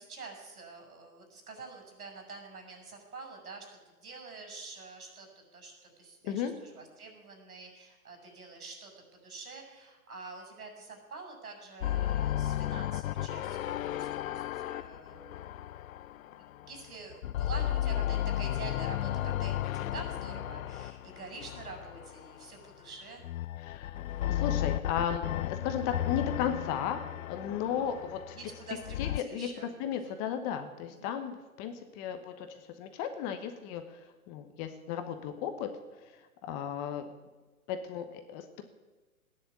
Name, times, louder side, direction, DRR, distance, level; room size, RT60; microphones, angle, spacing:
voice 1, 0.0-15.7 16.1-23.2 27.7-28.0 28.3-30.1 31.0-31.1, right 3 dB, 80° right, 3 dB, 6.5 m, -47 dB
sound 1, 11.8-16.8 17.1-22.4 23.2-29.2, left 13 dB, 65° left, 0.5 m, -34 dB
voice 2, 23.6-24.0 24.3-27.0 27.3-28.4 29.0-29.5 29.8-34.0 34.3-35.7 36.4-37.0 37.7-38.7, left 8 dB, 20° left, 8 dB, 1.0 m, -35 dB
16.0 x 10.0 x 8.3 m, 1.2 s
hypercardioid pair, 150°, 43 cm